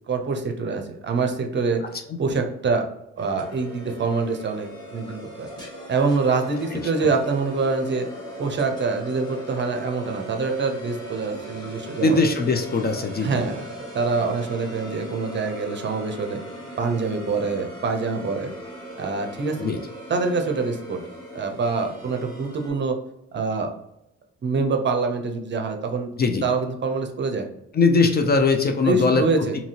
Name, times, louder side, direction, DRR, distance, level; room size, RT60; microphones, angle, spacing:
voice 1, 0.1-1.8 2.2-2.8 3.2-5.5 5.9-8.1 8.4-12.2 12.8-16.4 16.8-18.5 19.0-19.6 20.1-21.0 21.3-23.0 23.3-23.7 24.4-26.1 26.4-27.5 28.8-29.6, right 4 dB, 40° right, 5 dB, 0.6 m, -25 dB
sound 1, 3.2-22.7, equal, 15° left, 1.2 m, -39 dB
voice 2, 6.7-7.1 12.0-13.5 19.6-19.8 26.2-26.5 27.7-29.2, left 3 dB, 35° left, 5 dB, 0.4 m, -21 dB
2.8 x 2.7 x 2.7 m, 0.83 s
cardioid pair, 90°, 30 cm